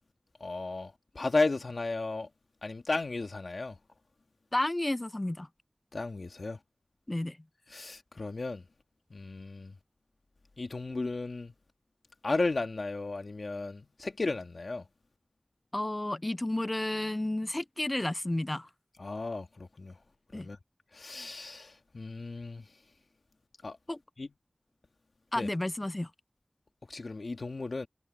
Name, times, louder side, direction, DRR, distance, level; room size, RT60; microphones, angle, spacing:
voice 1, 0.4-2.3 2.6-3.8 5.9-6.6 7.7-8.7 9.1-9.7 10.6-11.5 12.2-14.9 19.0-20.0 20.3-20.6 20.9-22.7 23.6-23.8 24.2-24.3 25.4-25.5 26.9-27.9, left 3 dB, 90° left, 1.8 m, -34 dB
voice 2, 4.5-5.5 7.1-7.4 15.7-18.7 20.3-20.5 23.9-24.0 25.3-26.1, left 1 dB, 35° left, 0.4 m, -31 dB
wide cardioid pair, 50°, 0 cm